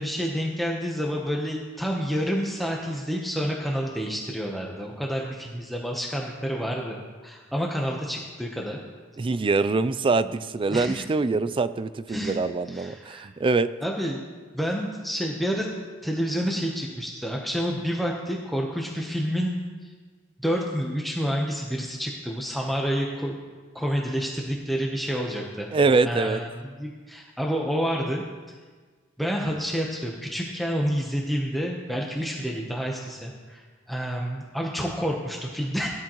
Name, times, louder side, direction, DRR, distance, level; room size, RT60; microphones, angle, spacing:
voice 1, 0.0-8.8 10.7-11.0 12.1-12.4 12.7-13.3 13.8-14.2 14.5-15.7 16.0-19.6 20.4-23.3 23.7-25.7 26.0-28.2 29.2-35.9, equal, ahead, -1 dB, 0.9 m, -29 dB
voice 2, 9.2-13.7 25.7-26.4, right 3 dB, 25° right, 14 dB, 0.4 m, -24 dB
17.0 x 10.0 x 3.1 m, 1.4 s
head